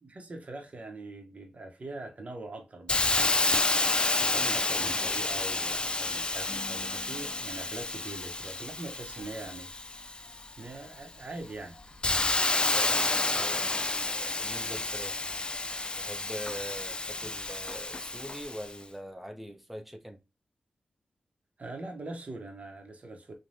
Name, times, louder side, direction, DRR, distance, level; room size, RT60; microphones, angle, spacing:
voice 1, 0.0-3.3 4.2-9.7 10.3-11.8 21.6-23.4, right 2 dB, 50° right, 0.8 m, -42 dB
Hiss, 2.9-10.5 11.0-18.7, left 2 dB, 30° left, 0.3 m, -30 dB
sound 1, 6.5-10.8, left 4 dB, 55° left, 0.7 m, -52 dB
voice 2, 12.7-13.8 14.1-15.3 16.0-20.2, equal, 5° right, 0.7 m, -43 dB
3.2 x 2.1 x 2.6 m
cardioid pair, 45°, 3 cm